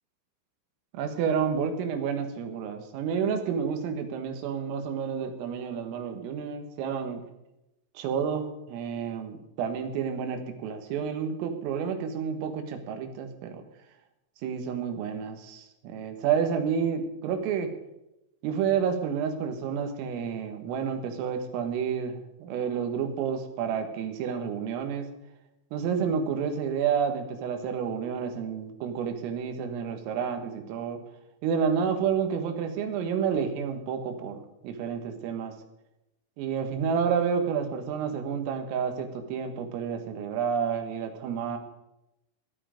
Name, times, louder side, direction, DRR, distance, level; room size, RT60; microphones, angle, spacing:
voice 1, 0.9-7.2 8.0-13.6 14.4-17.7 18.4-25.1 25.7-31.0 31.4-35.5 36.4-41.6, right 7 dB, 85° right, 6 dB, 4.2 m, -30 dB
17.5 x 11.5 x 5.1 m, 0.90 s
omnidirectional pair, 5.8 m